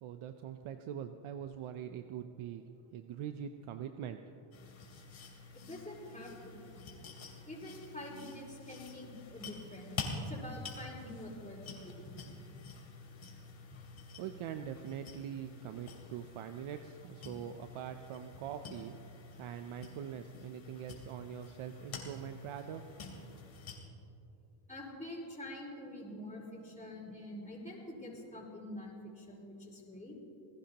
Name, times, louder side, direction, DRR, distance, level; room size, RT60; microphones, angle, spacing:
voice 1, 0.0-2.6 2.9-4.2 14.2-18.9 19.4-23.2, right 9 dB, 75° right, 7 dB, 0.8 m, -43 dB
sound 1, 4.5-23.8, left 4 dB, 65° left, 3.0 m, -48 dB
voice 2, 5.5-6.8 7.5-12.1 24.7-30.2, left 1 dB, 15° left, -5 dB, 4.9 m, -46 dB
27.5 x 17.0 x 3.0 m, 2.8 s
cardioid pair, 105°, 50 cm